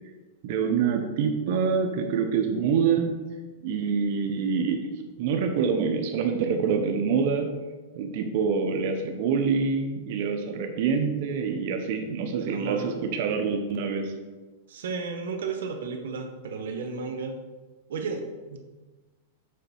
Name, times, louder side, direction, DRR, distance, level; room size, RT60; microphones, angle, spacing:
voice 1, 0.4-3.1 3.6-4.8 5.2-7.5 7.9-14.1, right 6 dB, 55° right, 4 dB, 0.9 m, -26 dB
voice 2, 12.4-12.9 14.7-17.4 17.9-18.6, right 4 dB, 80° right, 5 dB, 0.9 m, -33 dB
6.7 x 4.1 x 5.4 m, 1.3 s
hypercardioid pair, 135°, 0 cm